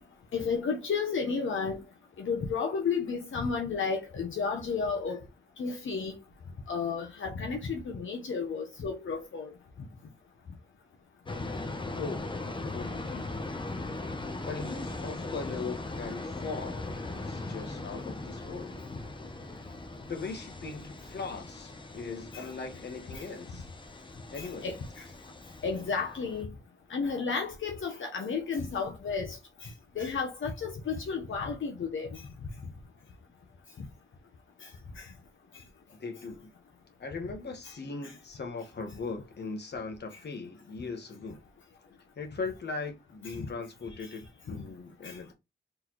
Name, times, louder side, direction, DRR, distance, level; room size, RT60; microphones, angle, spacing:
voice 1, 0.3-1.8 2.2-5.2 5.6-6.2 6.7-9.5 22.3-22.5 23.1-23.2 24.4-25.0 25.6-26.5 26.9-29.7 30.0-32.2 33.8-33.9 34.6-34.7 35.0-35.1 44.5-44.6 45.0-45.2, left 5 dB, 75° left, 0.8 m, -32 dB
sound 1, 11.3-26.4, left 2 dB, 25° left, 0.6 m, -39 dB
voice 2, 12.0-12.3 12.7-13.3 14.4-18.8 19.4-19.6 20.1-23.7 24.3-24.8 35.9-36.5 37.0-41.4 42.2-45.3, left 4 dB, 55° left, 1.1 m, -39 dB
4.0 x 3.3 x 2.9 m
wide cardioid pair, 110°, 20 cm